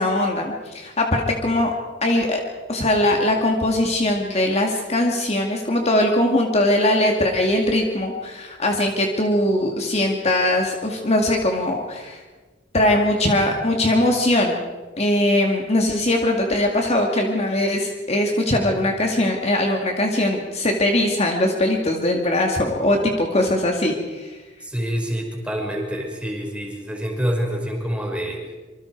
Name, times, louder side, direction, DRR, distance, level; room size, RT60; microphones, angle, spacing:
voice 1, 0.0-1.7 2.0-2.4 2.7-12.2 12.7-14.6 15.0-24.4, left 1 dB, 35° left, 1 dB, 2.3 m, -21 dB
voice 2, 24.6-28.4, equal, 5° right, 0 dB, 5.4 m, -26 dB
26.0 x 25.0 x 4.7 m, 1.3 s
head